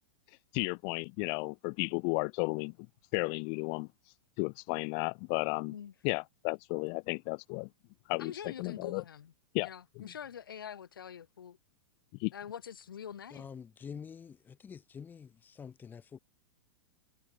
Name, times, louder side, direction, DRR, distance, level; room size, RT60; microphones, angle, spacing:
voice 1, 0.5-2.7 3.1-3.9 4.4-5.7 6.0-7.7 8.1-9.0 9.5-9.7 10.0-10.1 12.2-12.3, left 40 dB or more, 45° left, 0.5 m, -33 dB
voice 2, 8.2-9.3 9.6-11.6 12.3-13.5 13.9-14.0, left 8 dB, 85° left, 1.6 m, -45 dB
voice 3, 13.3-16.2, left 7 dB, 15° left, 0.9 m, -47 dB
hypercardioid pair, 120°, 11 cm